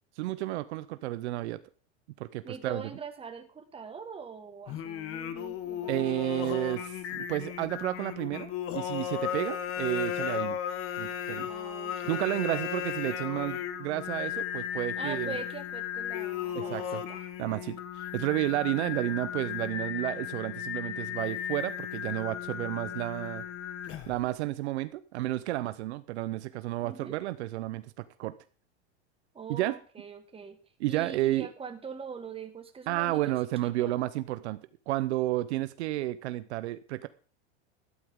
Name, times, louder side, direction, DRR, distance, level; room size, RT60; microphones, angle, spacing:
voice 1, 0.2-1.6 2.2-2.8 5.9-10.6 11.0-11.5 12.1-15.4 16.5-17.0 17.4-23.4 24.1-28.3 29.5-29.7 30.8-31.5 32.9-37.1, right 16 dB, 75° right, 13 dB, 0.9 m, -31 dB
voice 2, 2.4-6.2 11.4-12.6 15.0-17.3 26.8-27.2 29.3-30.6 30.9-33.3 33.6-33.9, right 5 dB, 15° right, 7 dB, 1.7 m, -43 dB
Singing, 4.7-24.3, left 9 dB, 40° left, 1.4 m, -35 dB
12.5 x 12.0 x 3.7 m, 0.38 s
supercardioid pair, 120°, 34 cm